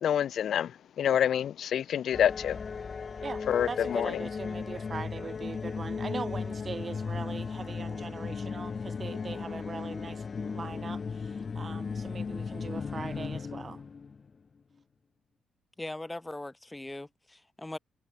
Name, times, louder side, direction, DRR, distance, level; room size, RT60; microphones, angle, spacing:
voice 1, 0.0-2.6 3.5-4.2, left 9 dB, 65° left, 0.7 m, -27 dB
sound 1, 2.1-14.3, left 5 dB, 40° left, 2.5 m, -36 dB
voice 2, 3.7-13.8, right 5 dB, 35° right, 4.6 m, -41 dB
voice 3, 15.8-17.8, left 2 dB, 10° left, 4.3 m, -40 dB
cardioid pair, 90°, 0 cm